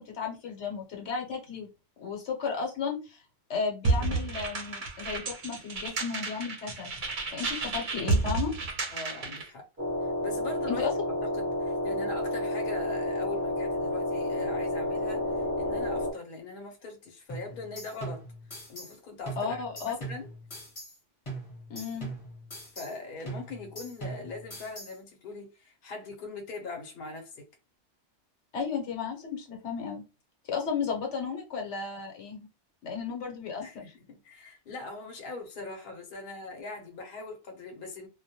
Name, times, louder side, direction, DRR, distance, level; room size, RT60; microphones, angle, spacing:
voice 1, 0.0-1.7 2.0-3.2 3.5-6.9 7.3-8.5 10.7-10.9 19.4-20.0 21.7-22.2 28.5-30.0 30.5-32.5 32.8-33.6, left 6 dB, 75° left, 1.0 m, -34 dB
sound 1, 3.8-9.5, right 3 dB, 50° right, 0.7 m, -31 dB
voice 2, 8.9-9.7 10.2-10.9 11.3-18.2 18.5-20.3 22.7-27.4 33.6-38.1, left 3 dB, 55° left, 0.8 m, -41 dB
sound 2, 9.8-16.1, left 1 dB, 15° right, 0.5 m, -30 dB
sound 3, 17.3-19.0 19.3-21.0 21.3-23.0 23.3-25.0, right 2 dB, 30° left, 0.8 m, -41 dB
2.2 x 2.1 x 2.8 m
omnidirectional pair, 1.2 m